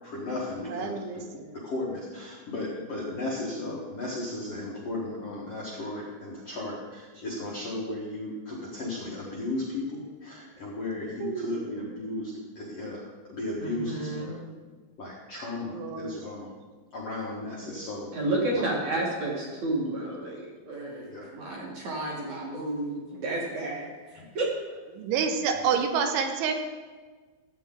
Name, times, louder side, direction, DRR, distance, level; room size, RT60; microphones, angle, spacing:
voice 1, 0.0-0.9 1.5-14.4 15.0-16.5 16.9-18.1 18.5-18.8 21.1-21.3 24.2-24.3 25.6-25.7, left 2 dB, 85° left, -5 dB, 1.3 m, -35 dB
voice 2, 0.7-1.6 11.2-12.3 15.6-16.2 17.6-17.9 24.9-26.5, right 6 dB, 80° right, 5 dB, 3.2 m, -30 dB
voice 3, 13.6-14.3 18.1-23.9 24.3-24.5, right 2 dB, 55° right, -3 dB, 2.1 m, -31 dB
14.0 x 8.3 x 3.8 m, 1.4 s
omnidirectional pair, 5.5 m